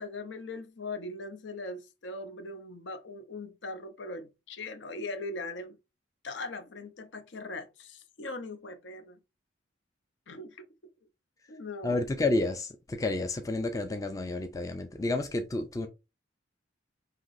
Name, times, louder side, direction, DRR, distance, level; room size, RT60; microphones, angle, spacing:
voice 1, 0.0-5.8 6.2-9.2 10.3-10.6 11.5-12.0, left 2 dB, 65° left, 0.7 m, -40 dB
voice 2, 11.8-15.9, left 2 dB, 20° left, 0.4 m, -30 dB
5.8 x 2.9 x 2.6 m
head